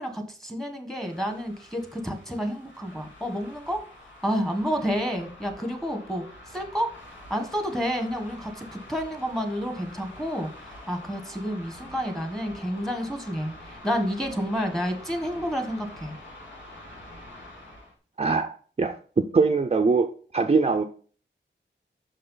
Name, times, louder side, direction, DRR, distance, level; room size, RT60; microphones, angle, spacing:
voice 1, 0.0-3.8 4.2-6.2 6.5-16.1, equal, ahead, 1.4 m, -30 dB
sound 1, 0.9-17.9, left 1 dB, 80° left, 2.5 m, -46 dB
voice 2, 18.2-20.1 20.3-20.8, right 4 dB, 35° right, 0.5 m, -22 dB
6.2 x 5.5 x 3.9 m
wide cardioid pair, 105°, 19 cm